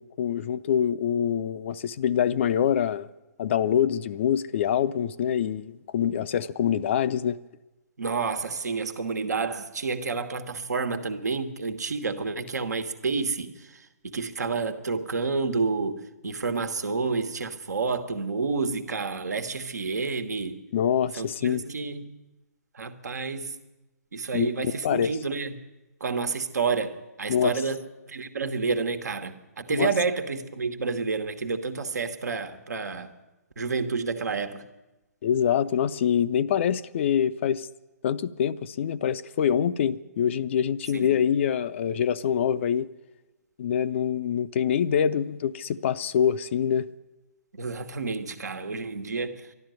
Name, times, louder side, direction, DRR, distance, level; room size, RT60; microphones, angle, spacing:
voice 1, 0.0-3.1 3.4-7.4 20.7-21.6 24.3-25.1 27.3-27.5 29.7-29.9 35.2-37.7 38.0-42.9 43.6-46.9, left 8 dB, 45° left, 0.5 m, -25 dB
voice 2, 8.0-20.6 21.2-22.1 22.7-23.5 24.1-25.5 26.0-27.8 28.1-33.1 33.6-34.7 40.9-41.2 47.5-49.5, right 4 dB, 80° right, 1.4 m, -29 dB
12.0 x 12.0 x 9.1 m
hypercardioid pair, 135°, 9 cm